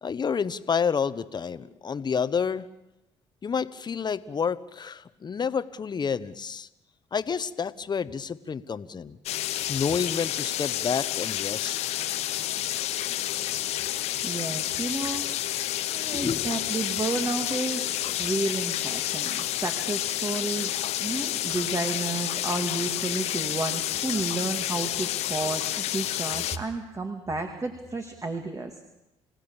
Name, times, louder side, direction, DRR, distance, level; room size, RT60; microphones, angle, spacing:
voice 1, 0.0-2.7 3.4-6.7 7.1-9.2 9.7-11.8 16.1-16.7, left 6 dB, 40° left, 14 dB, 1.1 m, -29 dB
sound 1, 9.3-26.6, left 13 dB, 75° left, 1.0 m, -30 dB
voice 2, 13.9-15.5 15.9-20.7 21.0-28.7, right 3 dB, 30° right, 4 dB, 2.4 m, -32 dB
30.0 x 16.5 x 7.2 m, 0.88 s
supercardioid pair, 65°, 11 cm